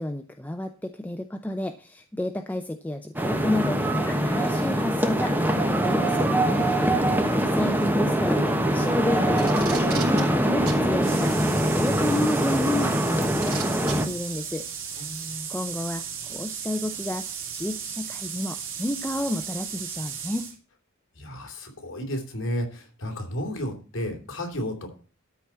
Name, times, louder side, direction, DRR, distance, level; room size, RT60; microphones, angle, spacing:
voice 1, 0.0-6.7 7.5-14.6 15.5-16.0 16.3-20.5, left 1 dB, 10° left, 6 dB, 0.5 m, -31 dB
sound 1, 3.2-14.1, right 1 dB, 10° right, 1.1 m, -23 dB
Packing tape duct tape, 9.4-10.2 10.7-10.8 12.1-12.2 13.4-13.9 15.0-15.1, right 6 dB, 80° right, 3.8 m, -34 dB
sound 2, 11.0-20.5, right 7 dB, 60° right, 2.5 m, -36 dB
voice 2, 15.0-15.5 21.1-25.0, equal, 60° left, 3 dB, 3.1 m, -33 dB
13.0 x 4.4 x 8.2 m, 0.38 s
head